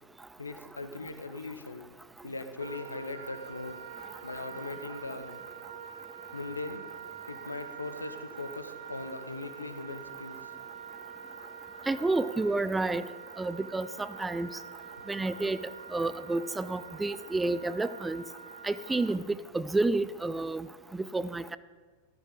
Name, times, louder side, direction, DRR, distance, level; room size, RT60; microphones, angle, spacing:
voice 1, 0.4-1.9 2.2-3.9 4.2-5.4 6.3-6.8 7.3-10.5, left 3 dB, 80° left, 9 dB, 1.0 m, -40 dB
Wind instrument woodwind instrument, 2.6-19.2, right 7 dB, 55° right, 1.2 m, -45 dB
voice 2, 11.9-13.0 13.4-14.5 15.1-18.2 18.6-20.7 20.9-21.6, right 2 dB, 10° right, 15 dB, 0.4 m, -30 dB
14.5 x 12.5 x 3.9 m, 1.4 s
figure-of-eight pair, 90°, 0 cm